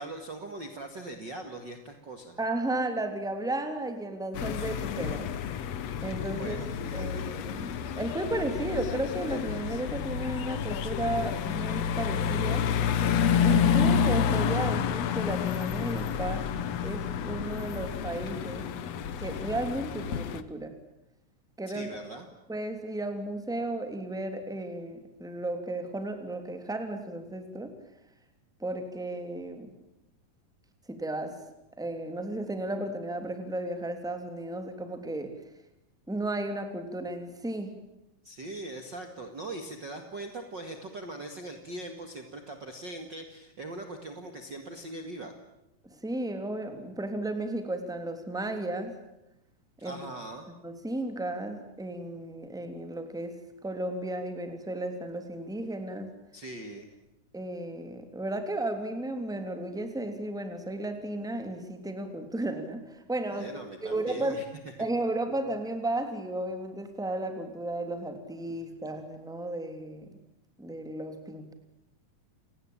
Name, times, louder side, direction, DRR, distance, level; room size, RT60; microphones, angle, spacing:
voice 1, 0.0-2.4 6.3-7.3 21.7-22.3 38.2-45.3 49.8-50.5 56.3-56.9 63.3-64.4, right 2 dB, 40° right, 5 dB, 2.3 m, -41 dB
voice 2, 2.4-5.3 6.0-6.6 6.9-12.7 13.4-16.5 16.8-18.6 19.2-20.7 21.6-21.9 22.5-27.7 28.6-29.7 30.9-31.4 31.8-35.3 36.1-37.7 45.9-49.0 49.8-50.0 50.6-53.3 53.6-56.1 57.3-64.4 64.8-70.2 70.6-71.5, right 1 dB, ahead, 6 dB, 2.8 m, -34 dB
sound 1, 4.3-20.4, left 8 dB, 60° left, 2.0 m, -29 dB
29.5 x 19.0 x 8.8 m, 0.87 s
omnidirectional pair, 3.8 m